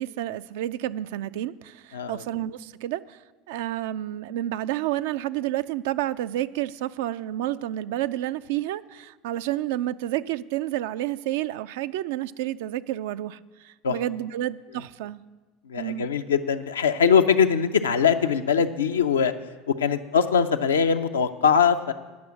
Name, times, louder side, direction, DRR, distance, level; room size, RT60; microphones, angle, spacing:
voice 1, 0.0-15.2 15.8-16.1, right 13 dB, 70° right, 0.3 m, -30 dB
voice 2, 15.7-19.3 19.8-21.9, left 7 dB, 85° left, 0.5 m, -22 dB
9.4 x 6.1 x 8.4 m
hypercardioid pair, 75°, 0 cm